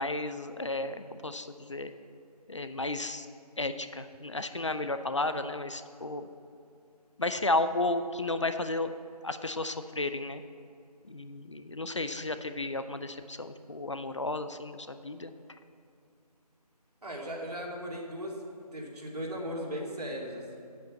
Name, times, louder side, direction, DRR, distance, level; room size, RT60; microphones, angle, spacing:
voice 1, 0.0-1.9 2.5-3.3 3.6-6.3 7.2-8.9 9.2-10.4 11.0-15.3, left 2 dB, 45° left, 10 dB, 0.5 m, -33 dB
voice 2, 17.0-18.3 18.7-20.6, equal, 70° right, -1 dB, 2.6 m, -37 dB
8.2 x 8.0 x 7.5 m, 2.5 s
figure-of-eight pair, 165°, 21 cm